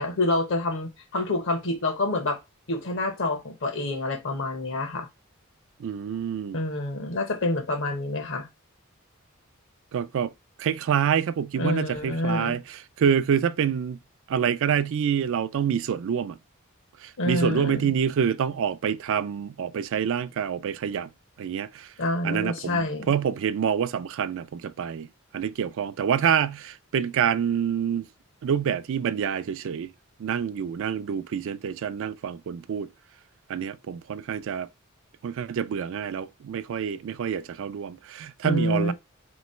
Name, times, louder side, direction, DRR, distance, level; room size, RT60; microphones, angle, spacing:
voice 1, 0.0-2.4 2.7-5.1 6.5-8.5 11.6-12.6 17.2-17.9 22.0-23.1 38.4-38.9, left 2 dB, 65° left, 1.0 m, -27 dB
voice 2, 5.8-6.6 9.9-10.3 10.6-14.0 14.3-16.4 17.0-21.1 21.4-21.9 22.2-25.1 25.3-28.1 28.4-29.9 30.2-32.9 33.5-34.7 35.2-38.9, right 8 dB, 65° right, 0.3 m, -27 dB
3.1 x 3.1 x 4.2 m
head